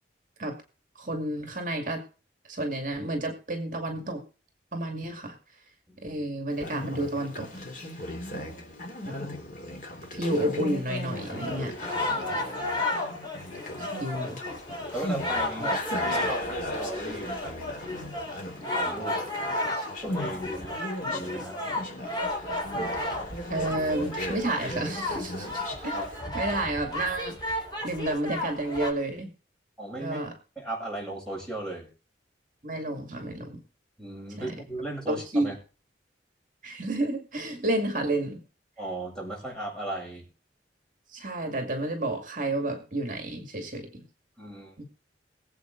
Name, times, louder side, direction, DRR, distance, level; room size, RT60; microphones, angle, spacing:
voice 1, 1.0-2.0 2.5-4.2 4.7-5.4 6.0-7.5 9.0-9.1 10.1-11.7 13.8-14.4 15.6-15.7 23.5-25.6 26.3-29.3 30.0-30.3 32.6-33.6 34.4-34.5 35.1-35.5 36.6-38.4 41.1-44.0 44.8-44.9, right 1 dB, 45° right, 4 dB, 2.3 m, -30 dB
voice 2, 5.9-6.2 12.1-12.5 13.0-13.1 14.9-15.8 16.1-17.5 18.7-19.2 20.0-20.8 21.1-21.6 25.9-26.1 29.8-30.2 30.6-31.9 34.0-35.5 38.8-40.3 44.4-44.8, right 2 dB, 5° left, -3 dB, 7.9 m, -36 dB
Conversation, 6.5-26.2, left 1 dB, 50° left, 3.4 m, -37 dB
sound 1, 10.9-28.9, left 1 dB, 25° left, 4.7 m, -33 dB
22.0 x 8.0 x 4.0 m, 0.37 s
head